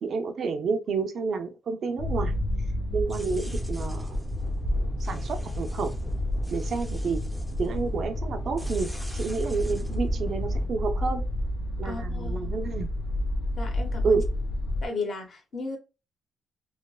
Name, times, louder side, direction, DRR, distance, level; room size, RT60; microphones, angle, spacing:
voice 1, 0.0-2.4 2.9-4.2 4.8-5.9 6.5-7.2 7.6-11.2 11.8-12.9 14.0-14.3, right 4 dB, 60° right, 0.5 m, -30 dB
sound 1, 2.0-14.9, left 1 dB, 70° left, 0.6 m, -30 dB
sound 2, 3.0-10.7, equal, ahead, 0.6 m, -39 dB
voice 2, 11.8-12.5 13.6-14.2 14.8-15.8, left 3 dB, 50° left, 1.0 m, -35 dB
3.1 x 2.0 x 2.2 m
cardioid pair, 90°, 0 cm